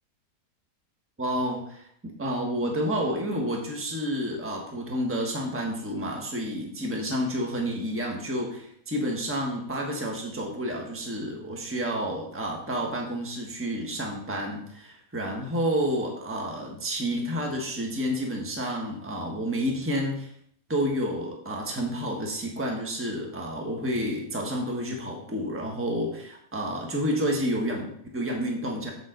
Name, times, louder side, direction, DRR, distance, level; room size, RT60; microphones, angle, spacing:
voice 1, 1.2-20.3 20.7-28.9, equal, 10° right, 0 dB, 1.3 m, -30 dB
7.7 x 7.3 x 4.0 m, 0.67 s
omnidirectional pair, 1.8 m